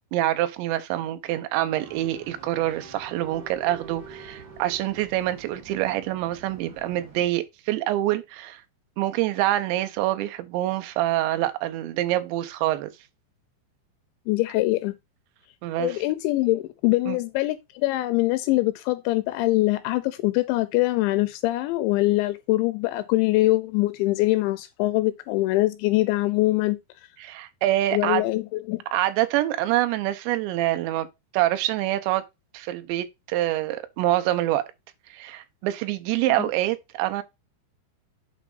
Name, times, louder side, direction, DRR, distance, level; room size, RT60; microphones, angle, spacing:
voice 1, 0.1-8.6 9.0-12.9 15.6-16.0 17.1-17.2 27.2-28.3 28.9-31.1 31.3-32.2 32.5-34.7 35.1-37.2, right 14 dB, 80° right, 3.0 m, -26 dB
sound 1, 1.8-7.3, right 5 dB, 50° right, 1.4 m, -46 dB
voice 2, 14.3-14.9 15.8-26.8 27.9-28.8, left 19 dB, 85° left, 2.9 m, -23 dB
8.5 x 3.4 x 5.4 m
omnidirectional pair, 5.3 m